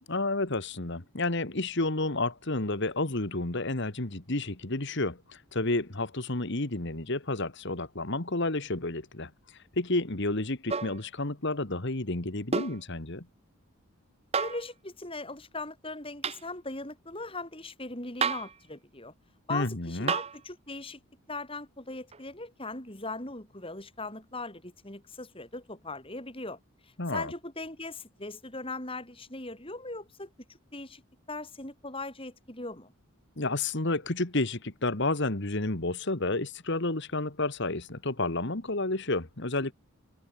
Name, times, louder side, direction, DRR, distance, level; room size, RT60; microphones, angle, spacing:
voice 1, 0.1-9.3 9.8-13.3 19.5-20.1 27.0-27.3 33.4-39.7, left 2 dB, 50° left, 1.9 m, -30 dB
sound 1, 10.7-11.0 12.5-12.8 14.3-14.7 16.2-16.4 18.2-18.6 20.1-20.4 22.1-22.2, right 5 dB, 25° right, 0.7 m, -30 dB
voice 2, 14.4-19.1 19.5-21.0 21.3-26.6 27.1-30.3 30.7-31.0 31.3-32.9, left 2 dB, 25° left, 5.1 m, -39 dB
head